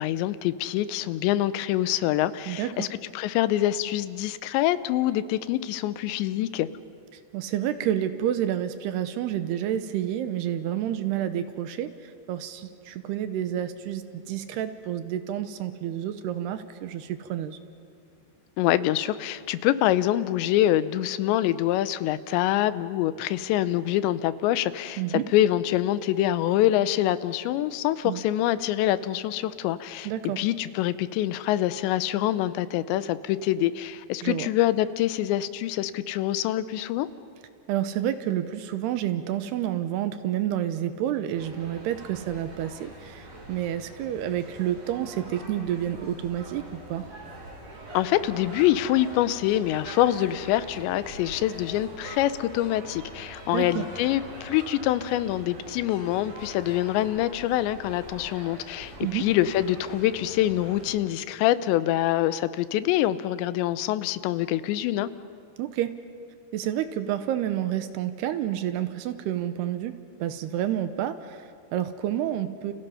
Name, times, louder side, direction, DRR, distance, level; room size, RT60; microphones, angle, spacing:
voice 1, 0.0-2.9 3.1-6.7 18.6-30.1 30.4-37.1 47.9-65.1, left 13 dB, 85° left, 14 dB, 3.0 m, -25 dB
voice 2, 2.5-2.9 7.3-17.6 25.0-25.3 28.0-28.2 30.1-30.4 34.2-34.5 37.7-47.0 53.5-53.9 59.0-59.3 65.6-66.0 66.5-72.7, right 11 dB, 75° right, 10 dB, 2.8 m, -29 dB
sound 1, 41.3-61.0, right 1 dB, 60° right, 8.8 m, -43 dB
30.0 x 30.0 x 5.7 m, 2.3 s
omnidirectional pair, 5.0 m